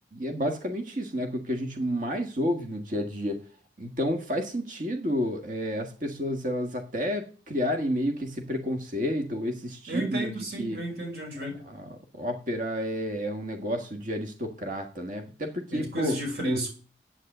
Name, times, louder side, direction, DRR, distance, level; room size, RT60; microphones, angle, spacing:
voice 1, 0.1-3.4 3.8-10.8 11.7-16.2, equal, 45° right, 5 dB, 1.6 m, -30 dB
voice 2, 9.9-11.6 15.7-16.7, right 1 dB, 65° right, 2 dB, 5.4 m, -32 dB
9.8 x 9.0 x 7.9 m, 0.38 s
head